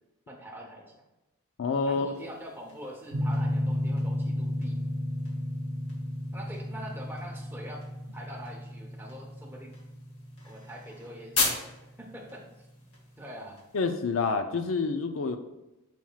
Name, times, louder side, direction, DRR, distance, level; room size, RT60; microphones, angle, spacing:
voice 1, 0.3-1.0 1.8-4.8 6.3-7.8 8.1-9.8 10.4-12.7 13.2-13.6, equal, 10° right, -1 dB, 1.0 m, -44 dB
voice 2, 1.6-2.1 13.7-15.4, left 4 dB, 65° left, 8 dB, 0.4 m, -28 dB
sound 1, 2.1-13.9, left 3 dB, 80° left, 1.8 m, -39 dB
sound 2, 3.1-11.8, left 1 dB, 55° right, 0.8 m, -33 dB
7.2 x 5.8 x 2.4 m, 1.0 s
head